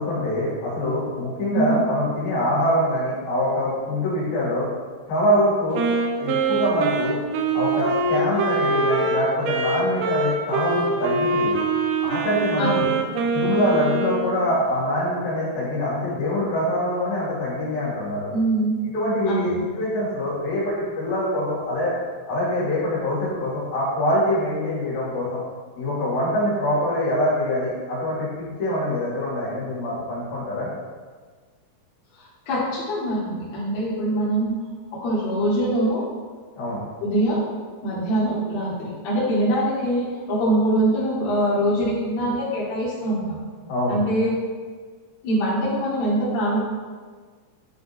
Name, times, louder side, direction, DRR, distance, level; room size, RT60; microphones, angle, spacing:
voice 1, 0.0-4.7 5.1-5.9 6.2-7.2 7.5-11.6 12.0-12.9 13.3-18.3 18.9-21.9 22.3-25.4 25.8-30.7 36.6-36.8 43.7-44.0, left 1 dB, 75° left, -8 dB, 3.9 m, -24 dB
voice 2, 1.5-1.8 12.6-12.9 18.3-18.8 19.3-19.6 32.5-34.6 35.0-36.0 37.0-37.4 37.8-43.4 43.9-44.3 45.2-46.6, right 1 dB, 50° left, -9 dB, 2.8 m, -23 dB
Wind instrument woodwind instrument, 5.7-14.4, right 3 dB, 85° right, 1.9 m, -24 dB
9.9 x 4.8 x 2.7 m, 1.5 s
omnidirectional pair, 4.4 m